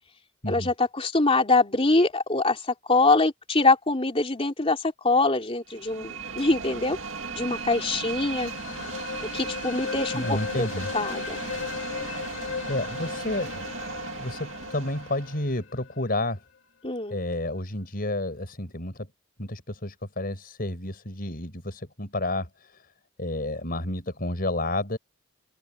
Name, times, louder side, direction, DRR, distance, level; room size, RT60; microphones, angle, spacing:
voice 1, 0.5-7.0 7.3-8.5 9.3-10.7 10.9-11.4 16.8-17.2, left 3 dB, 30° left, 3.2 m, -24 dB
sound 1, 5.7-15.5, right 4 dB, 70° right, 2.3 m, -37 dB
sound 2, 7.2-16.0, left 5 dB, 65° left, 2.8 m, -37 dB
voice 2, 10.1-10.9 12.7-13.7 14.2-16.4 17.1-19.1 19.4-22.9 23.2-25.0, left 1 dB, 45° left, 5.7 m, -30 dB
open air
head